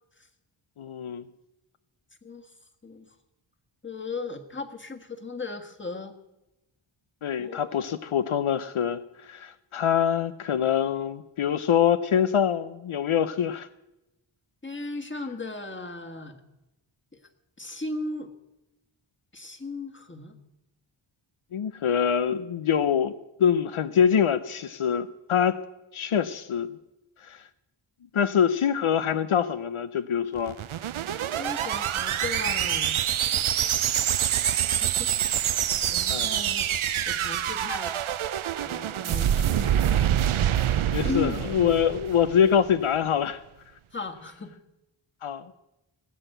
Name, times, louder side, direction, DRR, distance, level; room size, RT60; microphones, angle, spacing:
voice 1, 0.8-1.2 7.2-13.7 21.5-23.1 23.4-25.6 25.9-26.7 27.2-27.4 28.1-30.6 36.1-36.3 40.9-43.4 45.2-45.5, left 8 dB, 80° left, 12 dB, 0.7 m, -24 dB
voice 2, 2.8-3.1 3.8-6.1 7.4-7.9 14.6-16.4 17.6-18.3 19.3-20.4 31.4-33.0 34.5-35.1 35.8-36.7 37.1-38.3 38.6-40.1 41.0-41.5 43.9-44.5, left 3 dB, 25° left, 5 dB, 1.6 m, -36 dB
sound 1, 30.4-42.7, right 10 dB, 80° right, 0.6 m, -26 dB
19.0 x 7.9 x 7.9 m, 0.96 s
wide cardioid pair, 75°, 49 cm